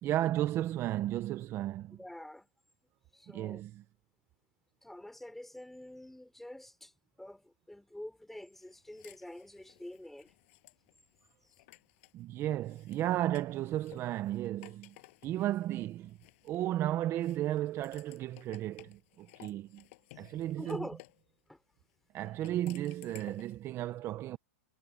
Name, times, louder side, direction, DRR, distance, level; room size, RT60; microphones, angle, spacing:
voice 1, 0.0-2.0 3.3-3.8 12.1-15.0 15.2-16.2 16.4-19.8 20.2-20.9 22.1-24.4, right 13 dB, 30° right, 0.8 m, -34 dB
voice 2, 2.0-2.5 3.1-3.6 4.8-6.9 7.2-10.3 20.1-20.3 20.6-21.0 21.5-21.6, left 1 dB, 5° left, 5.7 m, -46 dB
sound 1, 8.5-12.2 12.6-16.8 17.2-21.2 22.2-23.6, left 22 dB, 55° left, 6.4 m, -58 dB
hypercardioid pair, 135°, 8 cm